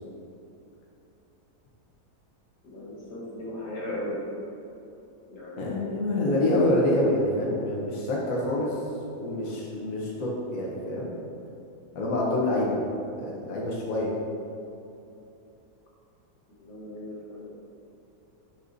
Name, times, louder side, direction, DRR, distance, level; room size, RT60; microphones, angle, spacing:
voice 1, 2.6-4.2 5.3-6.3 16.6-17.5, left 1 dB, 85° left, -6 dB, 2.2 m, -37 dB
voice 2, 5.6-8.8 9.2-11.1 11.9-12.8 13.2-14.1, left 1 dB, 60° left, -4 dB, 1.3 m, -26 dB
9.4 x 5.2 x 2.6 m, 2.9 s
omnidirectional pair, 1.8 m